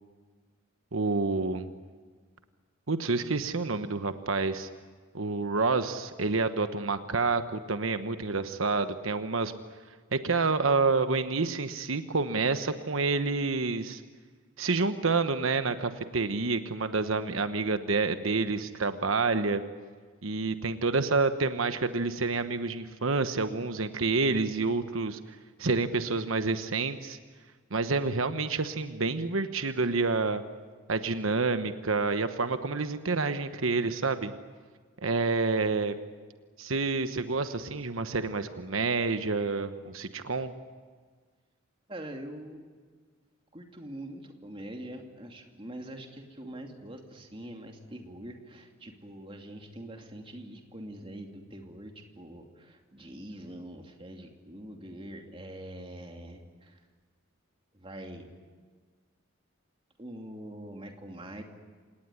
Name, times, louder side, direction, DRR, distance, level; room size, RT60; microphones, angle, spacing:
voice 1, 0.9-1.7 2.9-4.7 5.1-9.5 10.1-14.0 14.6-19.6 20.2-27.2 27.7-30.4 30.9-34.3 35.0-35.9 36.6-40.5, right 3 dB, 85° right, 9 dB, 1.2 m, -28 dB
voice 2, 41.9-42.7 43.5-56.8 57.7-58.3 60.0-61.4, right 1 dB, 25° right, 3 dB, 2.6 m, -44 dB
27.0 x 19.0 x 10.0 m, 1.5 s
head